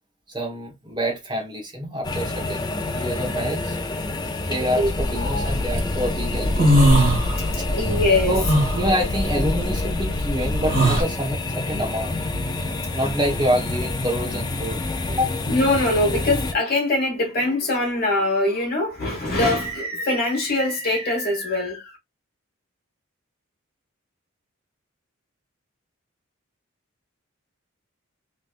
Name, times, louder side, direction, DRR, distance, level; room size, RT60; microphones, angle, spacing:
voice 1, 0.3-3.8 4.5-6.8 7.5-7.6 8.2-8.4 8.7-12.4 12.9-14.8 15.1-15.3, equal, 20° right, 1.1 m, -27 dB
Restaurant-WC-ST, 2.0-16.5, left 2 dB, 20° left, 0.4 m, -28 dB
voice 2, 4.5-4.9 5.2-5.5 6.8-8.4 11.7-12.2 15.5-22.0, left 2 dB, 45° left, 1.5 m, -23 dB
sound 1, 5.0-5.8 6.2-7.7 8.0-11.0, equal, 40° right, 1.9 m, -19 dB
3.3 x 3.0 x 2.5 m
head